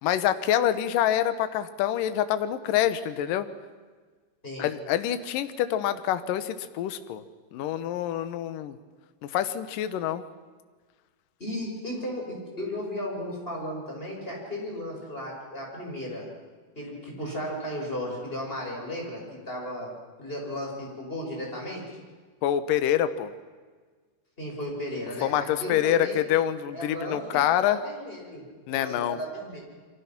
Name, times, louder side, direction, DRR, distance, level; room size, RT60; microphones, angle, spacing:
voice 1, 0.0-3.5 4.6-7.2 7.5-8.8 9.2-10.2 22.4-23.3 25.2-27.8 28.7-29.2, left 11 dB, 70° left, 11 dB, 2.1 m, -26 dB
voice 2, 11.4-16.3 16.7-22.0 24.4-26.2 26.7-29.6, equal, 10° left, -1 dB, 6.1 m, -35 dB
29.5 x 23.5 x 6.0 m, 1.5 s
omnidirectional pair, 5.2 m